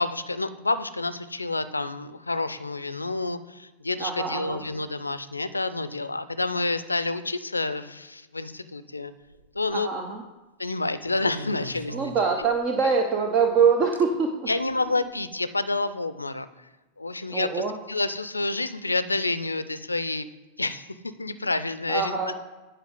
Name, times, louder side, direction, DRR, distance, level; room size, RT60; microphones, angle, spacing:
voice 1, 0.0-9.1 9.5-9.9 10.6-11.9 14.5-16.5 17.0-20.3 20.6-22.2, left 2 dB, 80° left, 14 dB, 0.4 m, -29 dB
voice 2, 4.0-4.6 9.7-10.2 11.9-14.5 17.3-17.7 21.9-22.4, right 5 dB, 35° right, 4 dB, 0.7 m, -24 dB
sound 1, 9.2-9.7 11.0-12.8 13.9-14.0 14.9-15.1, right 1 dB, 85° right, 0.5 m, -40 dB
10.0 x 4.8 x 3.8 m, 1.1 s
figure-of-eight pair, 90°, 0 cm